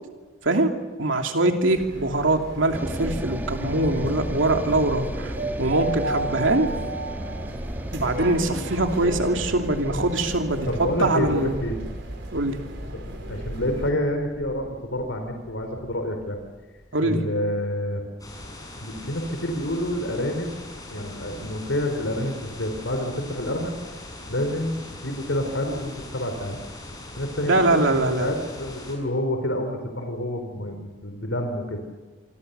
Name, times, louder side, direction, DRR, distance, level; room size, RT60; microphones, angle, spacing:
voice 1, 1.0-6.7 7.9-10.7 11.0-11.6 12.3-12.6 16.9-17.2 27.4-28.3, right 2 dB, 80° right, 4 dB, 2.8 m, -23 dB
sound 1, 1.7-13.9, right 2 dB, 65° right, 4.8 m, -34 dB
sound 2, 2.7-17.0, equal, 10° right, 1.4 m, -35 dB
voice 2, 10.7-11.8 13.1-16.4 17.0-18.0 18.8-20.6 20.9-23.7 24.3-26.6 27.2-27.8 28.2-31.8, left 1 dB, 75° left, 5 dB, 3.9 m, -28 dB
sound 3, 18.2-29.0, left 1 dB, 20° left, 6.4 m, -41 dB
27.0 x 25.0 x 6.9 m, 1.3 s
head